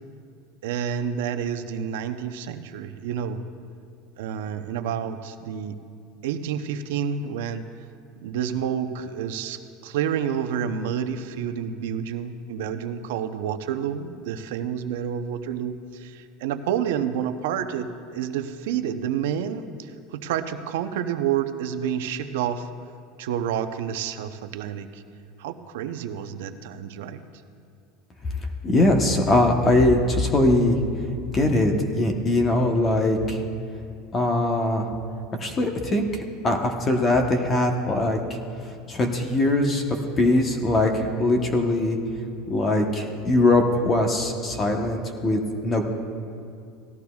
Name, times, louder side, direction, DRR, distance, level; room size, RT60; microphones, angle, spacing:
voice 1, 0.6-3.4 4.2-5.7 6.2-7.6 8.2-22.7 23.2-25.0 25.4-27.2, right 8 dB, 80° right, 9 dB, 0.7 m, -29 dB
voice 2, 28.6-30.8 31.3-33.4 34.1-34.9 35.4-38.4 38.9-39.8 40.2-42.0 42.5-45.9, left 2 dB, 25° left, 3 dB, 1.0 m, -21 dB
18.0 x 13.5 x 2.4 m, 2.4 s
supercardioid pair, 140°, 0 cm